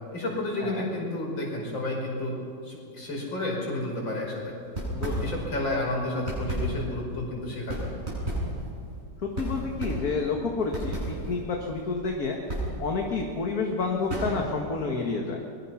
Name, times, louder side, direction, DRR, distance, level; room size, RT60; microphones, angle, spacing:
voice 1, 0.1-2.4 2.6-4.5 5.0-7.9, left 2 dB, 80° left, -2 dB, 6.4 m, -31 dB
voice 2, 0.6-0.9 4.9-5.3 9.2-15.4, left 4 dB, 50° left, 1 dB, 2.1 m, -30 dB
sound 1, 4.6-5.7 6.0-14.6, right 1 dB, 30° right, 8.2 m, -33 dB
24.5 x 22.0 x 5.9 m, 2.4 s
omnidirectional pair, 2.1 m